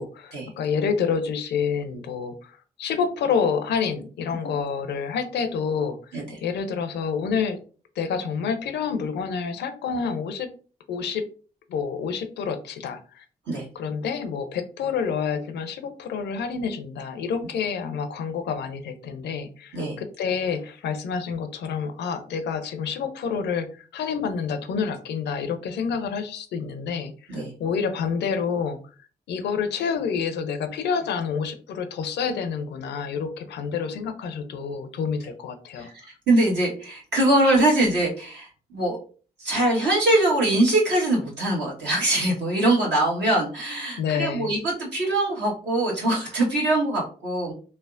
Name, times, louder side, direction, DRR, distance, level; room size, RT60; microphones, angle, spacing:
voice 1, 0.0-7.6 8.0-10.5 10.9-11.2 11.7-13.2 13.8-28.8 29.3-35.9 44.0-44.5, left 6 dB, 75° left, 9 dB, 0.5 m, -28 dB
voice 2, 36.3-39.0 39.4-47.5, right 1 dB, 70° right, -3 dB, 1.3 m, -23 dB
3.3 x 2.1 x 2.4 m, 0.39 s
hypercardioid pair, 40°, 18 cm